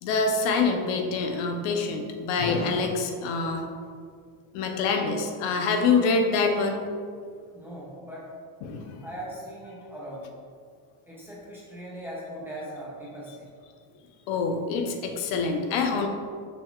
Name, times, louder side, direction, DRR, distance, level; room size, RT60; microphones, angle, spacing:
voice 1, 0.0-3.7 4.5-6.8 8.6-9.0 14.3-16.1, left 4 dB, 85° left, 4 dB, 0.8 m, -25 dB
voice 2, 7.5-8.3 9.0-10.2 11.1-13.5, right 1 dB, 5° right, -7 dB, 0.4 m, -39 dB
5.9 x 2.3 x 3.6 m, 2.1 s
cardioid pair, 170°, 47 cm